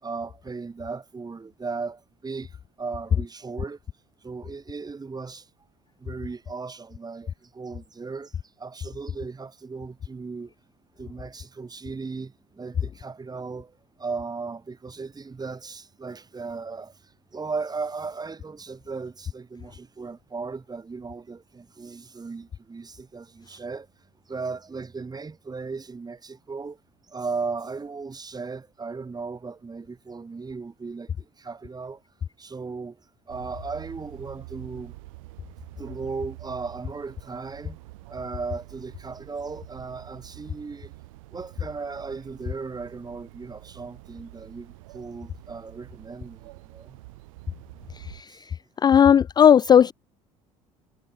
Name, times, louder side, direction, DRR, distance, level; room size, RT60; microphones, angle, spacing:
voice 1, 0.0-2.5 2.8-3.8 4.2-5.4 6.0-8.3 8.6-10.5 11.0-13.7 14.0-16.9 17.3-23.9 24.3-26.8 27.1-31.1 31.4-32.0 32.4-33.0 33.3-34.9 35.8-37.8 38.1-40.9 41.3-47.0, right 4 dB, 20° right, 4.8 m, -36 dB
sound 1, 33.3-48.2, right 21 dB, 65° right, 5.0 m, -46 dB
voice 2, 48.0-48.5 48.8-49.9, left 8 dB, 20° left, 0.4 m, -17 dB
figure-of-eight pair, 60°, 19 cm